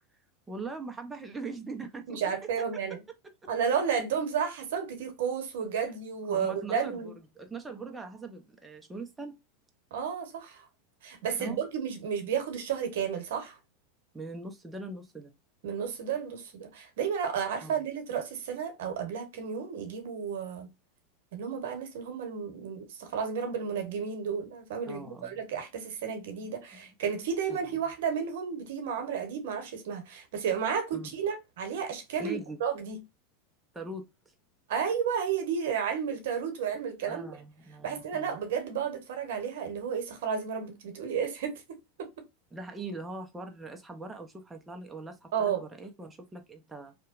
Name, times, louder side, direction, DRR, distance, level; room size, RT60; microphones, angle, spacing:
voice 1, 0.5-2.2 6.3-9.4 11.4-11.6 14.1-15.3 17.6-17.8 24.9-25.4 26.4-26.5 27.5-27.6 30.9-31.1 32.2-32.6 33.7-34.1 37.0-38.4 42.5-47.0, right 3 dB, 10° right, 0.5 m, -41 dB
voice 2, 2.1-3.0 3.5-7.1 9.9-10.7 11.0-13.6 15.6-20.7 21.3-33.0 34.7-37.3 37.8-41.5 42.0-42.1 45.3-45.6, right 7 dB, 75° right, 0.9 m, -32 dB
2.8 x 2.1 x 2.3 m
supercardioid pair, 115°, 0 cm